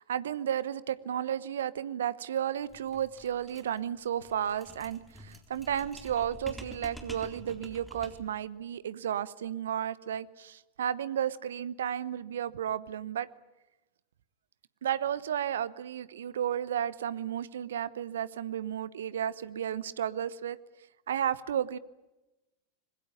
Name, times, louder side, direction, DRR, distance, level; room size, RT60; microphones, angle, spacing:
voice 1, 0.0-13.3 14.8-20.6 21.1-21.8, right 9 dB, 65° right, 18 dB, 1.0 m, -33 dB
sound 1, 2.7-8.4, right 1 dB, ahead, 3.9 m, -48 dB
25.5 x 21.0 x 9.1 m, 1.0 s
figure-of-eight pair, 90°, 0 cm